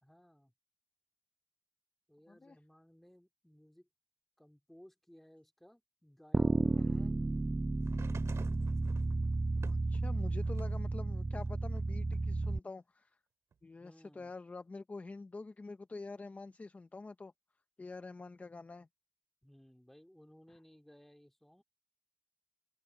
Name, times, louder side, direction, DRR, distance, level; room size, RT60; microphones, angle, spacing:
voice 1, 0.0-0.5 2.1-3.9 4.4-7.1 13.8-14.3 19.4-21.6, equal, 5° left, 2.7 m, -60 dB
sound 1, 6.3-12.6, right 2 dB, 20° right, 0.3 m, -32 dB
voice 2, 6.8-7.1 9.6-13.2 13.6-17.3 17.8-18.9 20.5-20.6, left 3 dB, 30° left, 0.6 m, -47 dB
sound 2, 7.8-10.9 11.4-12.5 13.5-13.6, right 6 dB, 70° right, 2.1 m, -54 dB
cardioid pair, 85°, 5 cm